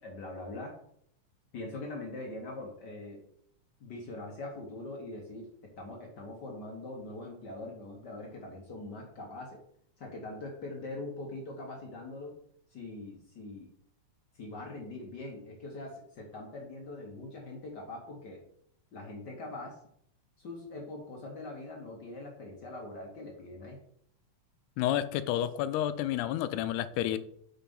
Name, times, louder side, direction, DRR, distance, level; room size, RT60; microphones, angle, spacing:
voice 1, 0.0-0.8 1.5-3.2 3.8-9.6 10.0-12.4 12.7-13.7 14.3-18.4 18.9-19.8 20.4-23.8, left 2 dB, 65° left, 0 dB, 1.0 m, -42 dB
voice 2, 24.8-27.2, left 12 dB, 90° left, 12 dB, 2.1 m, -30 dB
5.8 x 4.6 x 5.3 m, 0.67 s
omnidirectional pair, 3.5 m